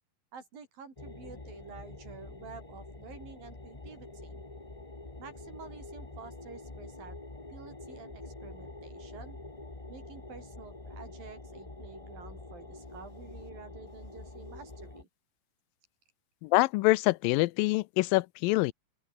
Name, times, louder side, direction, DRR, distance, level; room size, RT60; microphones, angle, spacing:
voice 1, 0.3-4.4 5.2-7.2 7.5-9.4 9.9-15.1, right 5 dB, 80° right, 7.0 m, -50 dB
sound 1, 1.0-15.0, left 2 dB, 15° left, 1.0 m, -46 dB
voice 2, 16.4-18.7, left 21 dB, 85° left, 2.3 m, -25 dB
open air
omnidirectional pair, 4.0 m